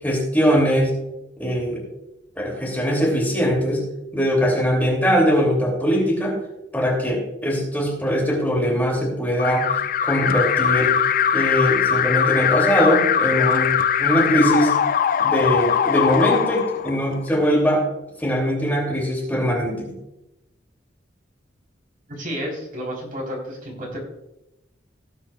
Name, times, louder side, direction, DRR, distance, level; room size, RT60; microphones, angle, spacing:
voice 1, 0.0-0.9 1.4-1.8 2.4-3.9 4.1-6.3 6.7-9.7 10.0-10.9 11.3-13.7 14.0-14.7 15.2-17.8 18.2-20.0, equal, 10° left, -2 dB, 2.8 m, -21 dB
Alarm, 9.4-17.3, left 8 dB, 50° left, 0.3 m, -21 dB
voice 2, 22.1-24.0, equal, 50° right, -1 dB, 3.9 m, -31 dB
18.0 x 8.9 x 2.4 m, 0.90 s
head